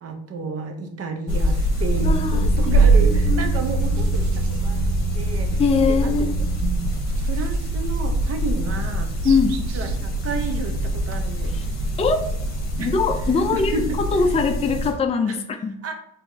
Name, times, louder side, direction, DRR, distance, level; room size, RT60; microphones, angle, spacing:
voice 1, 0.0-4.8 5.1-6.5 7.2-9.1 9.4-11.6 12.8-14.0 14.3-14.4 15.3-15.5 15.8-15.9, right 3 dB, 50° right, 5 dB, 0.9 m, -32 dB
sound 1, 1.3-14.9, right 1 dB, 60° left, 0.9 m, -23 dB
sound 2, 1.3-15.0, right 8 dB, 65° right, 0.5 m, -30 dB
voice 2, 2.0-2.7 3.0-3.5 5.6-6.3 9.2-9.6 11.5-11.7 12.0-12.2 12.8-15.8, left 5 dB, 20° left, 5 dB, 0.4 m, -22 dB
4.7 x 3.4 x 2.7 m, 0.78 s
cardioid pair, 90°, 30 cm